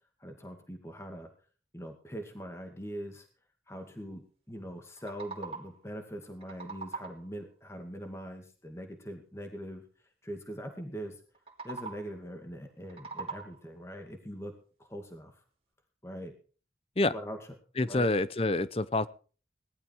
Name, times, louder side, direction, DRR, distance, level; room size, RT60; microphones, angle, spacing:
voice 1, 0.2-1.3 1.7-3.3 3.7-9.8 10.2-11.2 11.6-14.5 14.8-15.3 16.0-16.3 17.1-17.4 17.9-18.1, equal, 15° left, 4 dB, 2.1 m, -42 dB
sound 1, 4.8-5.9 6.2-7.4 11.3-12.2 12.7-13.8, right 4 dB, 35° right, 2.9 m, -43 dB
voice 2, 17.8-19.1, left 2 dB, 35° left, 16 dB, 0.7 m, -27 dB
18.5 x 12.0 x 4.7 m, 0.39 s
head